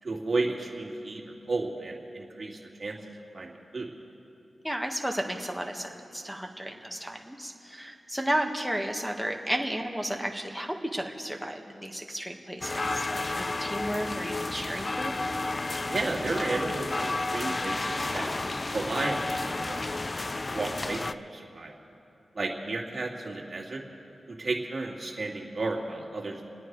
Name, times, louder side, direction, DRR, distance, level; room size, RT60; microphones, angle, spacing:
voice 1, 0.0-3.0 3.3-3.9 15.9-18.3 18.7-20.1 20.5-21.7 22.3-23.8 24.3-26.5, right 3 dB, 45° right, -1 dB, 2.3 m, -33 dB
voice 2, 4.6-13.2 13.6-15.2, equal, ahead, 3 dB, 1.5 m, -33 dB
sound 1, 12.6-21.1, left 2 dB, 35° left, 0.4 m, -31 dB
29.0 x 9.6 x 4.7 m, 2.8 s
cardioid pair, 70°, 0 cm